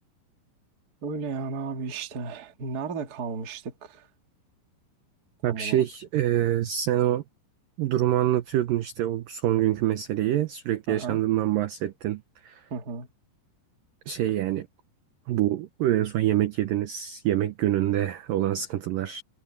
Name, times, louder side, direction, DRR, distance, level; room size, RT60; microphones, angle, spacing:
voice 1, 1.0-4.1 5.5-5.8 10.9-11.2 12.7-13.1, right 5 dB, 40° right, 1.3 m, -34 dB
voice 2, 5.4-7.2 7.8-12.5 14.1-14.7 15.3-19.2, right 12 dB, 80° right, 2.0 m, -25 dB
omnidirectional pair, 5.1 m